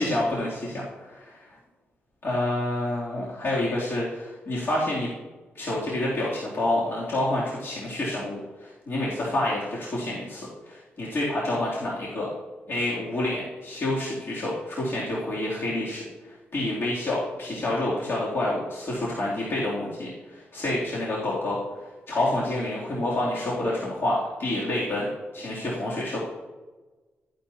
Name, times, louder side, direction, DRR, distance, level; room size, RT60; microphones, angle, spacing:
voice 1, 0.0-1.6 2.2-5.1 5.5-12.3 12.7-16.0 16.5-21.6 22.1-25.1 25.3-26.2, left 1 dB, 55° left, -7 dB, 2.9 m, -28 dB
14.0 x 10.0 x 2.8 m, 1.2 s
cardioid pair, 90°, 5 cm